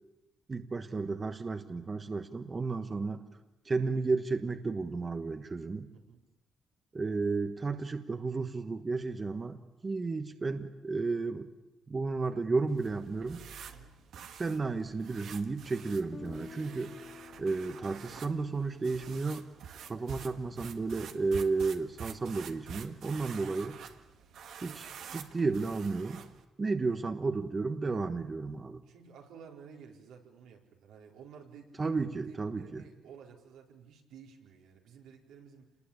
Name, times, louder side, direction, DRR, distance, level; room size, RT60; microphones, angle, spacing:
voice 1, 0.5-3.2 3.6-5.9 6.9-11.5 11.9-13.4 14.3-17.0 17.4-19.5 19.8-23.8 24.6-26.2 26.6-28.8 31.8-32.8, right 4 dB, 30° right, 7 dB, 1.4 m, -33 dB
voice 2, 5.9-6.2 13.7-14.0 28.9-31.9 32.2-35.7, right 6 dB, 90° right, 0 dB, 4.4 m, -53 dB
sound 1, 12.7-26.4, right 7 dB, 70° right, 1.8 m, -48 dB
Guitar, 16.1-20.1, left 4 dB, 30° left, 1.4 m, -51 dB
27.0 x 20.5 x 8.8 m, 1.0 s
cardioid pair, 90°, 0 cm